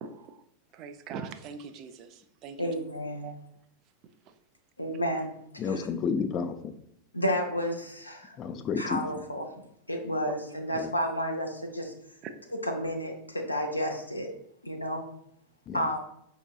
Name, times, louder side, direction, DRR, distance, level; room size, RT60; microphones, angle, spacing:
voice 1, 0.0-0.3 0.7-2.6 3.2-3.3, right 6 dB, 35° right, 8 dB, 0.4 m, -41 dB
voice 2, 2.6-3.3 4.8-5.3 5.6-5.9 7.1-8.4 8.8-9.5 9.9-11.9 12.5-14.3 14.6-15.0 15.7-16.0, equal, 85° left, 2 dB, 0.6 m, -31 dB
voice 3, 5.6-6.7 8.4-9.0 10.7-10.9 15.7-15.8, left 5 dB, 30° left, 9 dB, 0.4 m, -31 dB
5.1 x 2.8 x 2.4 m, 0.72 s
figure-of-eight pair, 90°, 0 cm